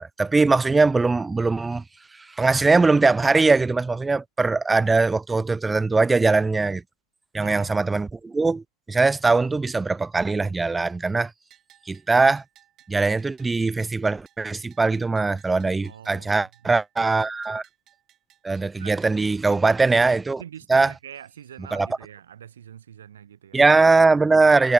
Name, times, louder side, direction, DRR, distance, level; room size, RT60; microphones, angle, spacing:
voice 1, 0.0-1.8 2.4-6.8 7.3-11.3 11.9-12.4 12.9-17.6 18.4-20.4 20.7-20.9 21.7-21.9 23.5-24.7, right 3 dB, 10° right, 0.4 m, -21 dB
voice 2, 7.4-7.8 15.8-16.7 18.8-19.0 20.4-23.6, right 9 dB, 65° right, 3.4 m, -44 dB
Bell, 11.5-19.1, right 12 dB, 30° right, 3.6 m, -59 dB
figure-of-eight pair, 90°, 0 cm